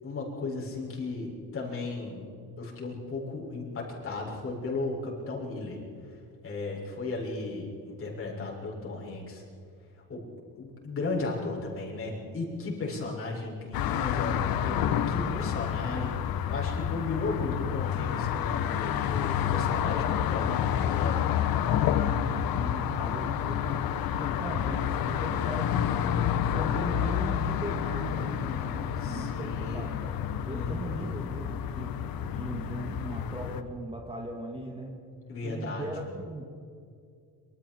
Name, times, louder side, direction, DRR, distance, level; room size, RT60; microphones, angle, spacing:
voice 1, 0.0-2.2 2.6-5.8 6.0-9.4 10.1-10.2 10.5-21.3 29.0-29.8 30.5-31.1 35.3-35.9, left 3 dB, 35° left, -3 dB, 6.8 m, -35 dB
sound 1, 13.7-33.6, left 9 dB, 65° left, 1.4 m, -29 dB
voice 2, 15.1-15.6 22.0-23.8 24.2-31.9 32.3-35.0 35.4-36.6, right 1 dB, 15° right, 1 dB, 2.4 m, -39 dB
27.0 x 26.5 x 4.8 m, 2.4 s
cardioid pair, 145°, 37 cm